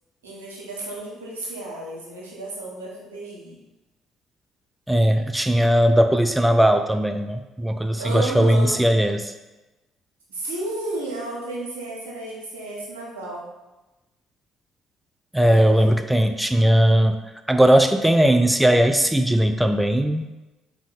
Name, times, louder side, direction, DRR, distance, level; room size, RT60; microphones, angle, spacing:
voice 1, 0.2-3.6 8.0-8.8 10.3-13.4 15.4-16.1, right 2 dB, 85° right, -4 dB, 1.0 m, -33 dB
voice 2, 4.9-9.3 15.3-17.2 17.5-20.3, right 1 dB, 5° right, 7 dB, 0.3 m, -18 dB
3.6 x 3.5 x 4.0 m, 1.1 s
hypercardioid pair, 50°, 0 cm